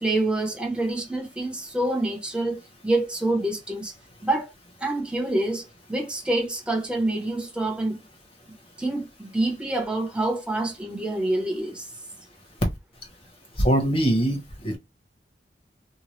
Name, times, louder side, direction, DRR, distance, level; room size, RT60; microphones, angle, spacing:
voice 1, 0.0-3.9 4.2-4.5 4.8-8.0 8.8-11.8, right 2 dB, 5° right, 0.7 m, -27 dB
voice 2, 13.6-14.4 14.6-14.8, right 1 dB, 30° left, 1.1 m, -21 dB
2.9 x 2.1 x 3.0 m
head